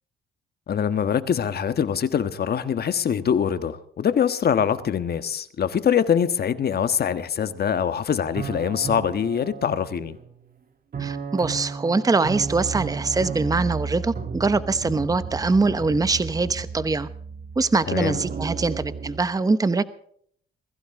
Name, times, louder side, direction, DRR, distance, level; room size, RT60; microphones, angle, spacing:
voice 1, 0.7-10.2 17.9-18.2, left 8 dB, 50° left, 1.4 m, -23 dB
sound 1, 8.3-10.4 10.9-19.3, right 5 dB, 45° right, 2.7 m, -33 dB
voice 2, 11.0-17.1 17.6-19.8, right 3 dB, 20° right, 0.9 m, -23 dB
21.5 x 15.0 x 3.7 m
cardioid pair, 90°, 20 cm